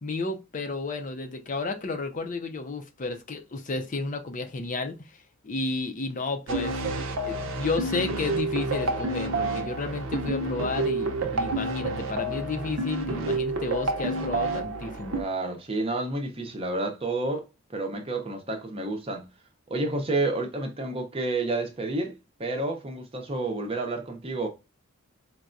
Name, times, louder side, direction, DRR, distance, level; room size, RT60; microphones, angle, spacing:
voice 1, 0.0-15.2, left 3 dB, 35° left, 0.5 m, -32 dB
sound 1, 6.5-15.2, right 2 dB, 70° right, 0.6 m, -29 dB
voice 2, 15.1-17.5 17.7-19.3 19.7-24.5, right 2 dB, 25° right, 0.6 m, -30 dB
4.6 x 2.2 x 2.5 m
head